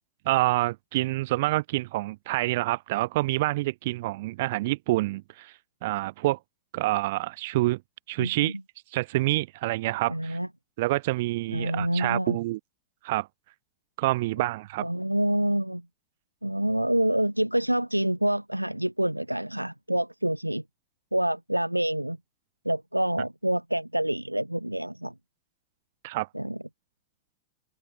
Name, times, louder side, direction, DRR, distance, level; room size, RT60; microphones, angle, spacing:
voice 1, 0.2-5.5 5.8-6.4 6.7-7.8 8.1-8.5 8.9-10.4 10.8-12.6 13.0-13.3 14.0-14.9 26.0-26.3, right 19 dB, 50° right, 6.0 m, -27 dB
voice 2, 8.2-8.5 10.1-10.5 11.5-12.4 14.8-15.8 16.4-20.6 21.1-22.2 22.6-25.1 26.3-26.6, right 1 dB, 90° right, 3.0 m, -27 dB
open air
figure-of-eight pair, 90°, 0 cm